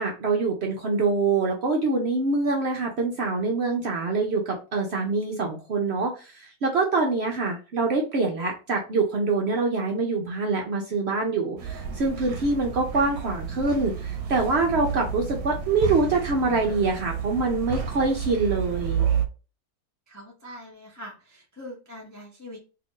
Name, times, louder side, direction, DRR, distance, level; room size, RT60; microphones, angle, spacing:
voice 1, 0.0-19.0, right 3 dB, 60° right, 1 dB, 0.7 m, -25 dB
sound 1, 11.6-19.3, right 7 dB, 75° right, 1.0 m, -31 dB
voice 2, 20.1-22.6, equal, 25° left, -2 dB, 0.3 m, -43 dB
2.9 x 2.5 x 3.6 m, 0.33 s
omnidirectional pair, 1.6 m